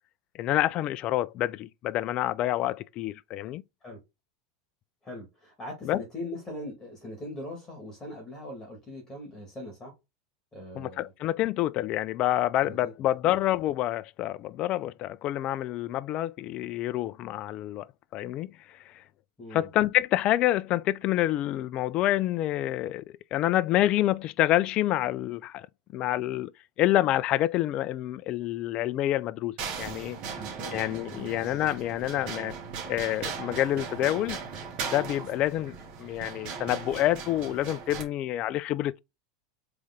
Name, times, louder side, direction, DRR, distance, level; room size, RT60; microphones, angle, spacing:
voice 1, 0.4-3.6 5.8-6.0 10.8-17.9 18.1-19.0 19.5-23.0 23.3-25.7 25.9-26.5 26.8-30.2 30.7-32.6 32.9-34.4 34.9-39.0, left 14 dB, 45° left, 0.3 m, -27 dB
voice 2, 5.0-9.9 10.5-11.1 12.6-12.9 19.4-19.7 30.4-30.8 31.1-31.3, left 1 dB, 20° left, 1.9 m, -41 dB
sound 1, 29.6-38.0, right 6 dB, 50° right, 1.7 m, -38 dB
3.8 x 3.3 x 3.5 m
supercardioid pair, 115°, 2 cm